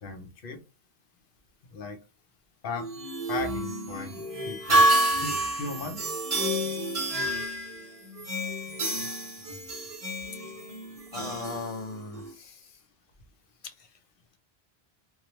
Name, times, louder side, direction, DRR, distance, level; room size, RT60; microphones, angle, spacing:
voice 1, 0.0-0.6 1.7-2.0 2.6-2.9 3.3-4.9 5.2-6.2, left 4 dB, 60° left, 6 dB, 0.9 m, -37 dB
sound 1, 2.8-12.3, right 1 dB, 40° right, 0.8 m, -29 dB
voice 2, 11.1-12.8 13.6-14.0, left 4 dB, 45° left, 7 dB, 0.5 m, -39 dB
3.0 x 2.2 x 3.0 m, 0.27 s
omnidirectional pair, 1.1 m